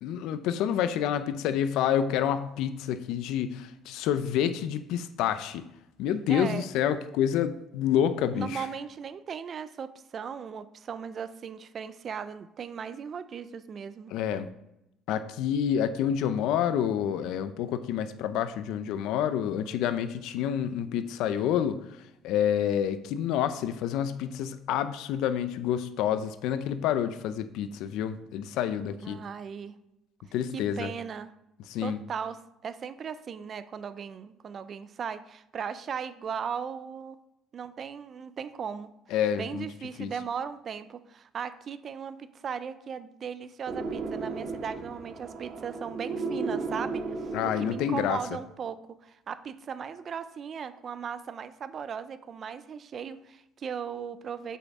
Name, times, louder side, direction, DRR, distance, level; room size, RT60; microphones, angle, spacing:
voice 1, 0.0-5.6 6.0-8.7 14.1-14.5 15.1-21.8 22.2-29.2 30.3-30.9 31.7-32.0 39.1-39.7 40.0-40.1 47.3-48.2, left 9 dB, 75° left, 11 dB, 0.5 m, -28 dB
voice 2, 6.3-6.7 8.3-14.1 29.0-29.8 30.5-31.3 31.8-32.4 32.6-37.2 37.5-38.9 39.3-47.3 47.6-54.6, right 7 dB, 40° right, 13 dB, 0.5 m, -37 dB
sound 1, 43.7-48.3, right 3 dB, 60° right, 1.1 m, -35 dB
8.0 x 5.6 x 3.6 m, 0.86 s
cardioid pair, 110°, 0 cm